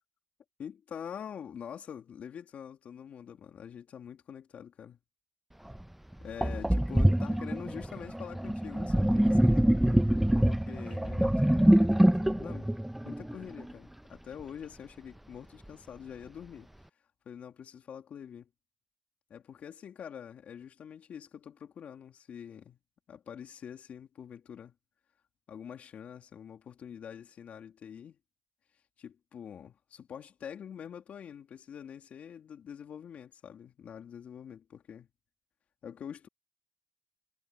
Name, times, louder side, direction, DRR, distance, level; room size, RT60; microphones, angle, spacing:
voice 1, 0.6-5.0 6.2-9.7 10.4-12.7 13.0-16.7 17.2-18.5 19.3-22.8 23.1-24.7 25.5-28.2 29.0-35.1 35.8-36.3, left 8 dB, 75° left, 3.2 m, -45 dB
Sink (filling or washing), 5.7-5.8 6.4-13.7, right 1 dB, 5° right, 0.9 m, -25 dB
supercardioid pair, 50°, 2 cm